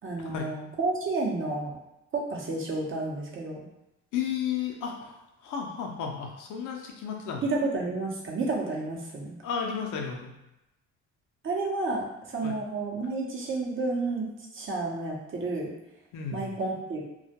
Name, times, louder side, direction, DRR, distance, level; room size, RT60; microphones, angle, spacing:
voice 1, 0.0-1.8 2.1-3.7 7.4-9.4 11.4-12.1 12.3-15.7 16.3-17.0, right 3 dB, 40° right, -2 dB, 0.7 m, -31 dB
voice 2, 4.1-5.2 5.4-7.4 9.4-10.3 12.4-12.5 16.1-16.5, left 7 dB, 85° left, 1 dB, 0.5 m, -33 dB
2.3 x 2.1 x 2.8 m, 0.92 s
cardioid pair, 90°, 30 cm